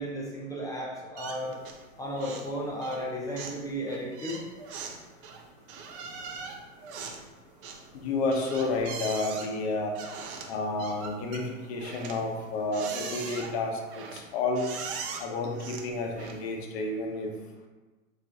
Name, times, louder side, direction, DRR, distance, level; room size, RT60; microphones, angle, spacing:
voice 1, 0.0-1.6 2.0-4.4, equal, 10° left, -3 dB, 0.5 m, -34 dB
sound 1, 1.2-1.9 2.2-2.5 2.8-16.6, right 5 dB, 40° right, 0.7 m, -41 dB
voice 2, 7.9-10.0 10.5-14.7 15.2-17.3, left 3 dB, 50° left, 2 dB, 0.9 m, -30 dB
4.4 x 4.2 x 2.4 m, 1.2 s
hypercardioid pair, 110°, 40 cm